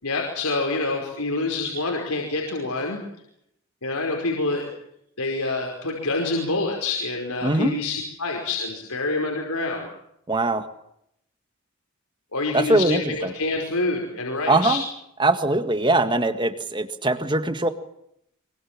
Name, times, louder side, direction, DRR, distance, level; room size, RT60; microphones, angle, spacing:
voice 1, 0.0-3.0 3.8-4.7 5.2-9.9 12.3-14.8, left 3 dB, 90° left, 0 dB, 5.1 m, -26 dB
voice 2, 7.4-7.8 10.3-10.7 12.5-13.3 14.5-14.8 15.2-17.7, right 2 dB, 20° right, 9 dB, 1.8 m, -22 dB
25.0 x 23.5 x 7.5 m, 0.76 s
head